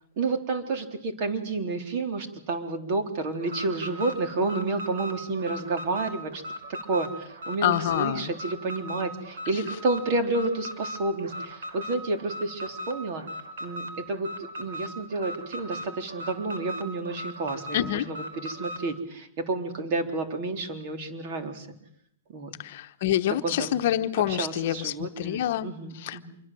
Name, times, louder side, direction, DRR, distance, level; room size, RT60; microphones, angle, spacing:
voice 1, 0.2-6.4 6.9-13.2 13.6-14.3 14.6-21.7 22.3-22.5 23.4-23.8 24.3-26.4, right 3 dB, 40° right, 6 dB, 3.8 m, -30 dB
Alarm, 3.4-18.9, equal, 75° right, 5.2 m, -38 dB
voice 2, 7.6-8.3 17.7-18.1 22.6-25.7 25.9-26.2, left 12 dB, 50° left, 9 dB, 1.1 m, -27 dB
26.0 x 23.5 x 7.7 m, 0.71 s
hypercardioid pair, 160°, 0 cm